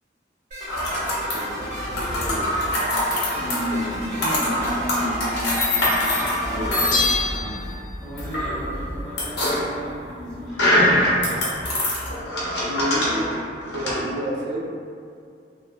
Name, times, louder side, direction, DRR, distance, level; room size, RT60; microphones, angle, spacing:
sound 1, 0.5-6.9, equal, 45° right, 0.9 m, -33 dB
sound 2, 0.7-14.0, left 1 dB, 65° left, 0.7 m, -24 dB
voice 1, 0.9-2.5 3.6-4.0 6.4-7.0 12.7-13.4 13.7-14.7, equal, 85° right, -3 dB, 0.5 m, -31 dB
voice 2, 3.3-7.7 8.0-11.1 12.9-13.5, equal, 5° left, -15 dB, 0.9 m, -33 dB
Bell, 6.9-8.3 8.6-8.7, left 4 dB, 45° left, 0.3 m, -26 dB
3.0 x 2.1 x 2.2 m, 2.3 s
head